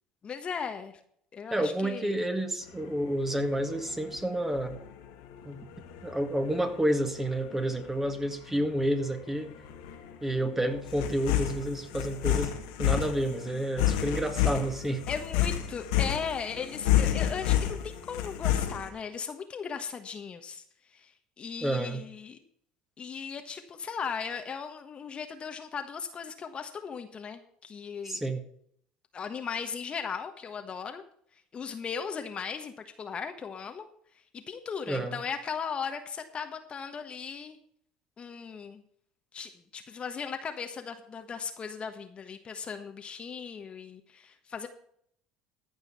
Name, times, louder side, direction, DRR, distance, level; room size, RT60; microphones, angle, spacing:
voice 1, 0.2-1.0 1.3-2.2 15.1-20.6 20.9-22.4 23.0-28.2 29.1-31.0 31.5-33.8 34.3-37.6 38.2-38.8 39.3-44.7, left 6 dB, 35° left, 7 dB, 1.3 m, -37 dB
voice 2, 1.5-4.8 5.5-5.6 6.0-9.5 10.2-12.5 12.8-15.0 21.6-22.0 28.1-28.4 34.9-35.2, right 1 dB, 10° right, 6 dB, 1.9 m, -30 dB
sound 1, 2.7-18.9, left 11 dB, 80° left, 1.9 m, -31 dB
14.5 x 5.5 x 6.8 m, 0.65 s
supercardioid pair, 85°, 3 cm